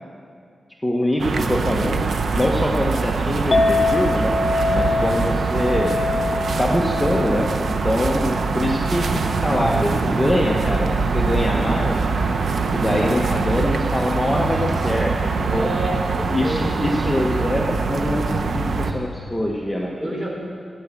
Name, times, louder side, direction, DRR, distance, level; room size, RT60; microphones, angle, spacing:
voice 1, 0.8-4.4 4.7-6.0 6.6-12.0 12.7-15.7 16.3-20.2, left 1 dB, 10° left, -1 dB, 1.5 m, -24 dB
sound 1, 1.2-18.9, right 4 dB, 75° right, 1.0 m, -23 dB
Chink clink, 3.5-9.8, left 3 dB, 50° left, 2.0 m, -25 dB
voice 2, 15.5-16.7 20.0-20.3, equal, 15° right, -2 dB, 4.8 m, -28 dB
16.5 x 10.5 x 7.6 m, 2.2 s
cardioid pair, 70°, 0 cm